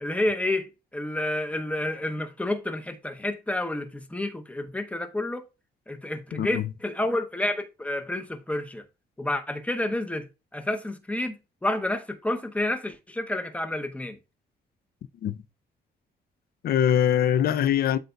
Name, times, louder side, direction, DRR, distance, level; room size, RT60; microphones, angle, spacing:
voice 1, 0.0-5.4 5.9-8.8 9.2-14.2, left 1 dB, 10° left, 0.7 m, -30 dB
voice 2, 6.3-6.7 15.2-15.4 16.6-18.0, left 10 dB, 60° left, 0.5 m, -23 dB
11.5 x 4.0 x 2.2 m
cardioid pair, 155°, 18 cm